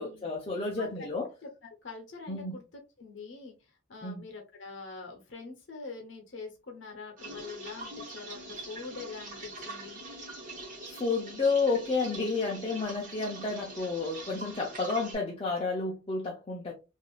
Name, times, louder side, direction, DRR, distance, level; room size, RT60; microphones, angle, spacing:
voice 1, 0.0-1.3 2.3-2.5 4.0-4.2 10.9-16.7, left 3 dB, 25° left, 0.5 m, -31 dB
voice 2, 1.4-2.6 3.0-10.0, left 4 dB, 65° left, 0.7 m, -44 dB
sound 1, 7.2-15.2, right 2 dB, 40° right, 1.2 m, -43 dB
3.4 x 2.5 x 2.3 m
head